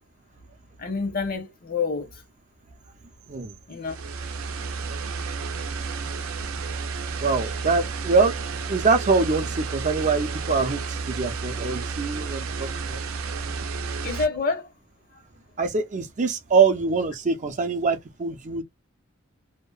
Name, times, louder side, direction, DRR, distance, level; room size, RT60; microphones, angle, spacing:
voice 1, 0.8-2.1 3.7-4.0 13.6-13.7 14.0-14.7 15.1-15.2, left 4 dB, 45° left, 0.8 m, -28 dB
sound 1, 3.8-14.3, right 4 dB, 90° right, 0.5 m, -31 dB
voice 2, 7.2-8.4 8.7-13.0 15.6-18.6, right 4 dB, 35° right, 0.5 m, -24 dB
2.7 x 2.1 x 2.3 m
head